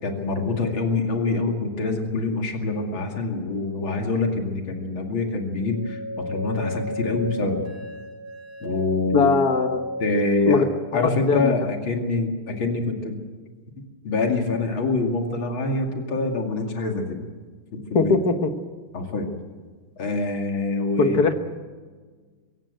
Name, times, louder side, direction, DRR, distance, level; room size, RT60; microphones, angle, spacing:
voice 1, 0.0-7.6 8.6-9.3 10.0-10.7 10.9-13.2 14.0-17.2 17.7-18.1 18.9-19.3 20.0-21.2, left 3 dB, 70° left, 3 dB, 3.2 m, -25 dB
sound 1, 5.7-10.6, left 1 dB, 50° right, 6.8 m, -33 dB
voice 2, 9.1-9.8 10.4-10.6 10.9-11.5 17.9-18.5 21.0-21.3, left 4 dB, 50° left, 8 dB, 1.7 m, -20 dB
22.5 x 17.0 x 7.9 m, 1.5 s
omnidirectional pair, 2.3 m